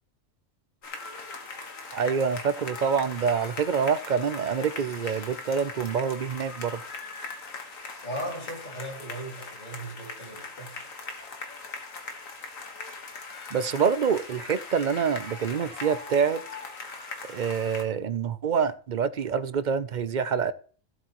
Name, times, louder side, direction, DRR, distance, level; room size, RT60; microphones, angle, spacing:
sound 1, 0.8-17.8, left 4 dB, 80° left, 1.9 m, -40 dB
voice 1, 1.9-6.8 13.5-16.4 17.3-20.5, right 6 dB, 50° right, 0.5 m, -26 dB
voice 2, 8.0-10.8, right 1 dB, 35° left, 2.5 m, -37 dB
15.5 x 7.7 x 3.0 m
omnidirectional pair, 1.4 m